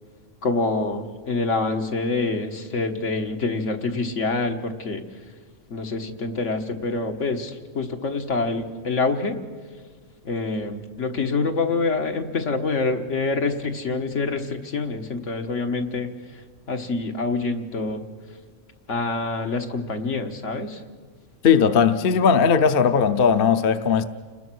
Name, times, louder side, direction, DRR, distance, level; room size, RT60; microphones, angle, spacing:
voice 1, 0.4-5.0 5.7-9.4 10.2-16.1 16.7-18.1 18.9-20.8, left 3 dB, 75° left, 5 dB, 1.8 m, -26 dB
voice 2, 21.4-24.0, left 6 dB, 50° left, 10 dB, 0.9 m, -18 dB
29.5 x 20.0 x 6.2 m, 1.5 s
omnidirectional pair, 1.3 m